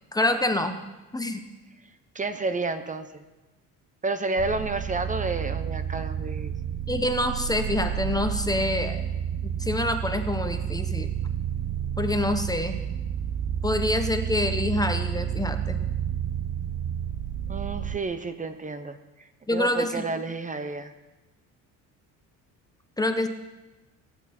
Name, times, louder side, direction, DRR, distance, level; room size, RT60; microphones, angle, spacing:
voice 1, 0.1-0.8 1.1-1.4 6.9-9.0 9.4-11.2 12.0-12.8 13.6-15.8 19.5-20.0 23.0-23.3, left 1 dB, 10° left, 7 dB, 1.0 m, -26 dB
voice 2, 2.1-3.2 4.0-6.5 17.5-20.9, right 3 dB, 25° right, 9 dB, 0.9 m, -31 dB
sound 1, 4.4-18.0, right 9 dB, 45° right, 0.7 m, -30 dB
23.5 x 9.8 x 4.4 m, 1.1 s
cardioid pair, 120°, 33 cm